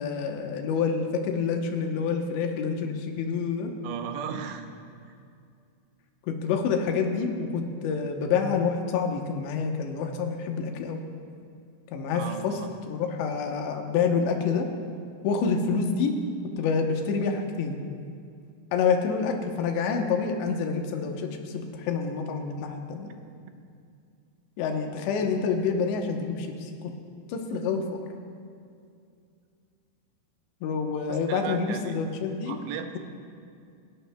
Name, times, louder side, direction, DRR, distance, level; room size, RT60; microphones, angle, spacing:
voice 1, 0.0-3.7 6.3-11.0 11.9-12.5 12.9-14.7 15.2-16.2 16.6-17.8 18.7-23.1 24.6-26.9 27.3-28.0 30.6-32.6, left 5 dB, 75° left, 3 dB, 3.1 m, -27 dB
voice 2, 3.8-4.7 12.1-12.7 31.1-31.9 32.5-33.0, right 7 dB, 80° right, 5 dB, 3.0 m, -36 dB
19.5 x 17.0 x 2.3 m, 2.3 s
omnidirectional pair, 5.2 m